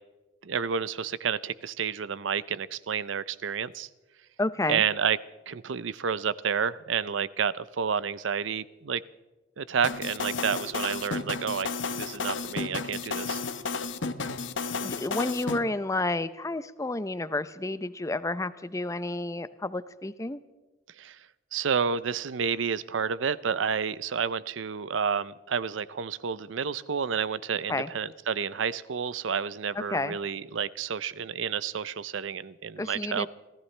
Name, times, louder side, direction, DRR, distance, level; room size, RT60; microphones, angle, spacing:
voice 1, 0.4-3.9 4.7-5.2 5.5-9.0 9.6-11.7 11.9-13.4 21.0-21.2 21.5-33.3, right 6 dB, 85° right, 18 dB, 0.6 m, -30 dB
voice 2, 4.4-4.8 14.8-20.4 27.7-27.9 29.9-30.2 32.8-33.3, left 2 dB, 15° left, 14 dB, 0.6 m, -30 dB
sound 1, 9.8-15.6, left 4 dB, 80° left, 1.0 m, -32 dB
29.0 x 14.5 x 3.3 m, 1.1 s
head